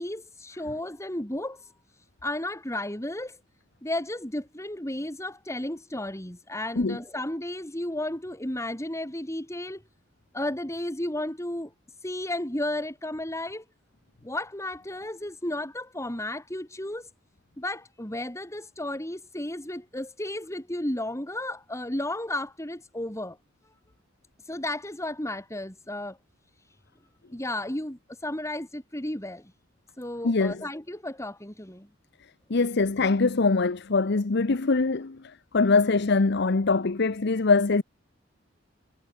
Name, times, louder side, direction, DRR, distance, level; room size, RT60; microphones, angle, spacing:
voice 1, 0.0-3.4 3.8-9.8 10.3-11.7 12.0-13.6 14.2-17.1 17.6-23.4 24.4-26.2 27.3-29.5 30.0-31.9, left 1 dB, 15° left, 3.5 m, -33 dB
voice 2, 30.2-30.6 32.5-37.8, left 3 dB, 60° left, 0.8 m, -23 dB
head